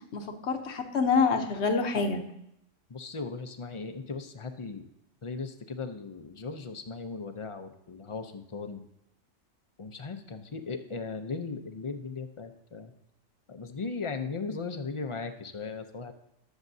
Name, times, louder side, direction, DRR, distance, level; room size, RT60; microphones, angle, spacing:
voice 1, 0.1-2.2, left 5 dB, 60° left, 6 dB, 1.2 m, -26 dB
voice 2, 2.9-4.9 5.2-8.8 9.8-12.9 13.5-16.1, left 4 dB, 35° left, 7 dB, 0.5 m, -37 dB
19.5 x 7.2 x 2.7 m, 0.79 s
omnidirectional pair, 1.3 m